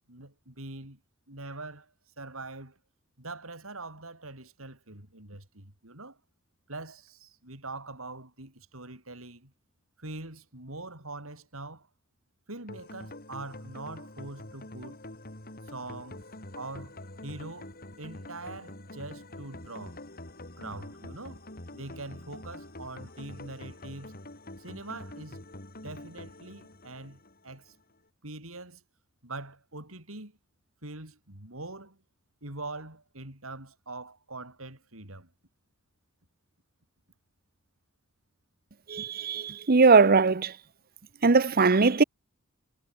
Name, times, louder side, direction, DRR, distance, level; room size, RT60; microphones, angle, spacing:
voice 1, 0.1-1.0 1.3-2.8 3.2-6.2 6.7-9.5 10.0-11.9 12.5-15.0 15.7-16.2 16.5-17.7 18.0-20.0 20.6-21.4 21.7-24.1 24.6-25.4 25.8-27.7 28.2-28.8 29.2-30.4 30.8-32.0 32.4-35.3, right 2 dB, 80° right, 6.8 m, -43 dB
sound 1, 12.7-27.7, left 1 dB, 45° left, 5.9 m, -46 dB
voice 2, 38.9-40.5 41.2-42.0, right 4 dB, 45° right, 0.8 m, -20 dB
head